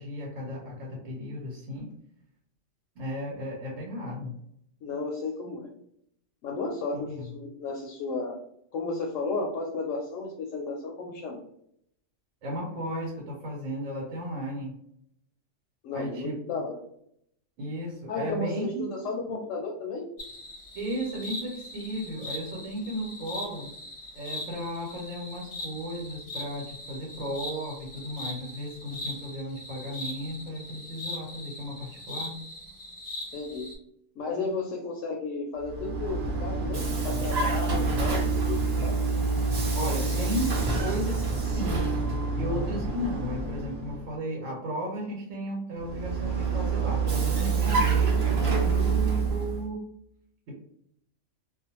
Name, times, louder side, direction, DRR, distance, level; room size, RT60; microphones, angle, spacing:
voice 1, 0.0-1.9 2.9-4.4 6.9-7.2 12.4-14.7 15.9-16.6 17.6-18.9 19.3-19.4 20.7-23.7 24.1-32.4 39.7-41.9 42.3-49.8 50.5-50.6, equal, 90° right, -3 dB, 1.2 m, -35 dB
voice 2, 4.8-5.7 6.4-8.4 8.7-11.4 15.8-16.8 18.1-20.1 33.3-33.7 34.2-39.0, left 3 dB, 80° left, 0 dB, 0.9 m, -33 dB
sound 1, 20.2-33.8, left 1 dB, 45° left, 0.6 m, -40 dB
Vehicle, 35.6-44.1 45.8-49.7, right 4 dB, 60° right, 0.9 m, -27 dB
2.5 x 2.1 x 2.8 m, 0.71 s
omnidirectional pair, 1.3 m